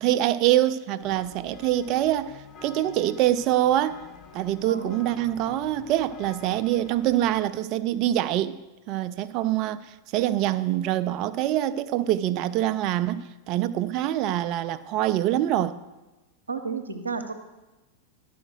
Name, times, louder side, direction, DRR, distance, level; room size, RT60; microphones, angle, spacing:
voice 1, 0.0-4.1 4.3-8.6 8.9-9.8 10.1-13.2 13.5-15.8, right 13 dB, 40° right, 0.4 m, -25 dB
sound 1, 1.0-7.4, left 7 dB, 30° left, 0.6 m, -47 dB
voice 2, 4.6-5.0 16.5-17.3, right 4 dB, 75° right, 0.8 m, -32 dB
11.5 x 5.0 x 6.3 m
figure-of-eight pair, 90°, 0 cm